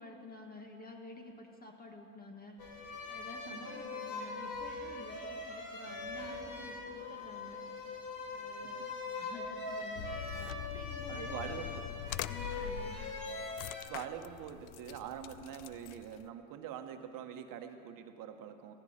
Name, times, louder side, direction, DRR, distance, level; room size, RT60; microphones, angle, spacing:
voice 1, 0.0-11.8 12.3-13.0, left 2 dB, 20° left, 3 dB, 1.5 m, -51 dB
sound 1, 2.6-13.9, left 3 dB, 45° left, 2.7 m, -42 dB
voice 2, 3.5-3.9 8.6-8.9 11.1-11.8 13.8-18.7, right 9 dB, 50° right, 6 dB, 1.2 m, -44 dB
sound 2, 9.9-16.3, left 12 dB, 80° left, 0.6 m, -43 dB
16.0 x 15.0 x 4.3 m, 2.5 s
supercardioid pair, 110°, 42 cm